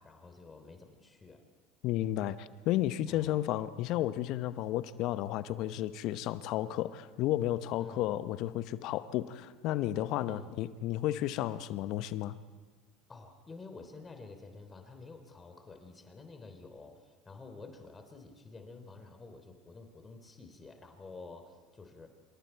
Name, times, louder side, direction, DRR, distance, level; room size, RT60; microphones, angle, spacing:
voice 1, 0.0-1.4 3.1-3.4 7.8-8.2 10.3-10.6 13.1-22.1, left 3 dB, 20° left, 6 dB, 3.5 m, -50 dB
voice 2, 1.8-12.4, left 13 dB, 60° left, 14 dB, 0.9 m, -32 dB
27.5 x 27.0 x 4.6 m, 1.4 s
hypercardioid pair, 75°, 0 cm